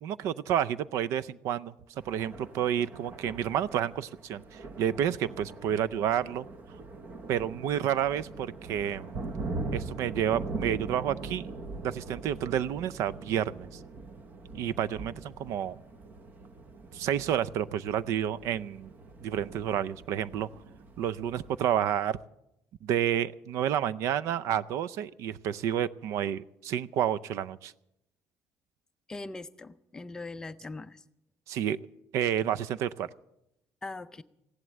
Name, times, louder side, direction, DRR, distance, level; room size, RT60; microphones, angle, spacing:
voice 1, 0.0-1.7 2.1-6.5 7.3-9.2 9.7-11.5 11.8-13.8 14.5-15.8 16.9-18.9 19.2-20.5 21.0-22.2 22.8-27.7 31.5-31.8 32.1-33.1, right 10 dB, 65° right, 19 dB, 0.5 m, -30 dB
Thunder, 2.0-21.7, right 3 dB, 35° right, 0.9 m, -42 dB
voice 2, 29.1-31.0 33.8-34.2, left 3 dB, 10° left, 10 dB, 0.5 m, -41 dB
16.0 x 11.0 x 7.5 m, 0.84 s
cardioid pair, 180°, 6 cm